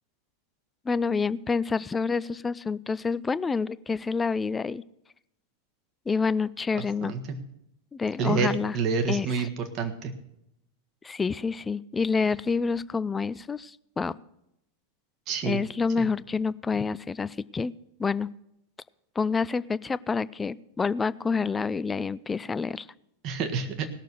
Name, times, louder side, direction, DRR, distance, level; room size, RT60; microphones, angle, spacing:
voice 1, 0.9-4.8 6.1-7.1 7.9-8.8 9.1-9.3 11.0-14.2 15.4-17.7 18.0-18.3 19.2-22.9, left 5 dB, 15° left, 18 dB, 0.4 m, -28 dB
voice 2, 6.7-7.4 8.2-10.1 15.3-15.6 16.0-16.1 23.2-23.9, right 5 dB, 35° right, 5 dB, 1.6 m, -28 dB
18.0 x 6.7 x 6.3 m, 0.82 s
figure-of-eight pair, 90°, 0 cm